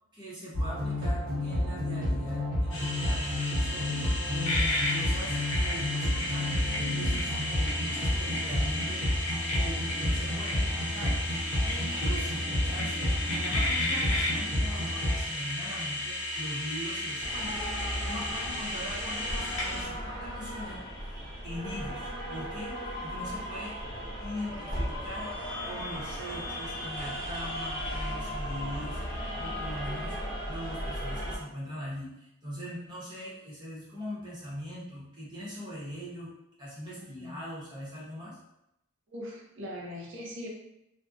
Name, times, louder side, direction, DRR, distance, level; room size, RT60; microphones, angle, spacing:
voice 1, 0.1-9.2 9.5-11.2 11.6-22.7 23.0-23.7 24.2-30.2 30.4-36.3 36.6-38.4, equal, 20° right, -7 dB, 0.8 m, -41 dB
sound 1, 0.5-15.2, left 1 dB, 85° right, 0.9 m, -30 dB
sound 2, 2.7-19.8, left 1 dB, 60° left, 0.7 m, -33 dB
sound 3, 17.2-31.4, equal, 20° left, 0.4 m, -36 dB
voice 2, 37.0-37.4 39.1-40.5, equal, 60° right, -2 dB, 0.6 m, -41 dB
2.5 x 2.0 x 2.4 m, 0.85 s
head